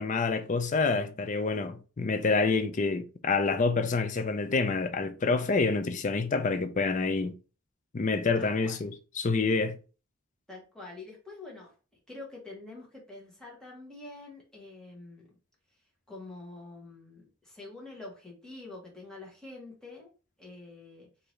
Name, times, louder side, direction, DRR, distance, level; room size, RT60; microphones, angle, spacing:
voice 1, 0.0-7.4 7.9-9.8, left 4 dB, 35° left, 0.4 m, -27 dB
voice 2, 8.3-8.8 10.5-11.7 12.1-15.3 16.1-20.1 20.4-21.1, left 2 dB, 5° left, 1.3 m, -46 dB
4.7 x 2.7 x 3.1 m
head